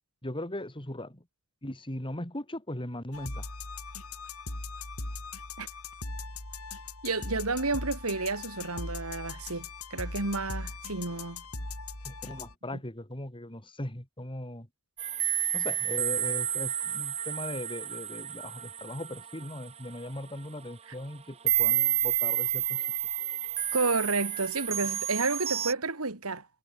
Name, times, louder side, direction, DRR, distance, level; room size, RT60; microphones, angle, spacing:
voice 1, 0.2-1.2 1.6-3.5 12.0-14.7 15.5-22.8, left 1 dB, 25° left, 3.5 m, -39 dB
sound 1, 3.1-12.5, left 3 dB, 85° left, 6.9 m, -39 dB
voice 2, 7.0-11.4 23.7-26.5, right 3 dB, 80° right, 3.2 m, -31 dB
sound 2, 15.0-20.1 20.6-20.7 21.5-25.7, right 11 dB, 30° right, 0.6 m, -30 dB
head